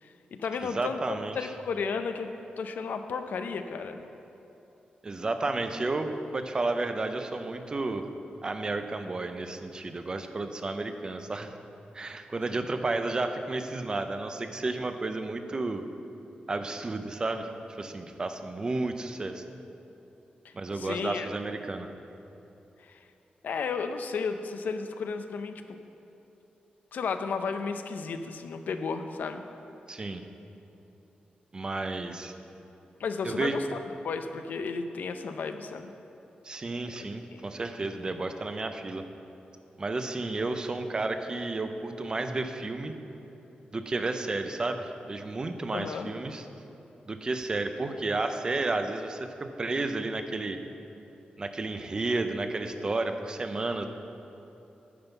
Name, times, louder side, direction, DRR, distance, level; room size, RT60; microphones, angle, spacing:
voice 1, 0.0-4.0 20.4-21.3 22.8-23.0 23.4-25.6 26.9-29.4 33.0-33.8 34.0-35.9 37.0-37.5 45.7-46.1, left 5 dB, 70° left, 8 dB, 0.5 m, -33 dB
voice 2, 0.6-1.5 5.0-8.0 8.4-11.5 11.9-15.8 16.5-17.5 17.8-19.4 20.5-21.9 29.9-30.2 31.5-32.3 33.2-33.6 36.4-39.0 39.8-42.9 43.7-46.4 47.1-50.6 51.4-53.9, right 2 dB, 25° right, 7 dB, 0.5 m, -32 dB
9.7 x 5.4 x 6.9 m, 3.0 s
wide cardioid pair, 175°, 3 cm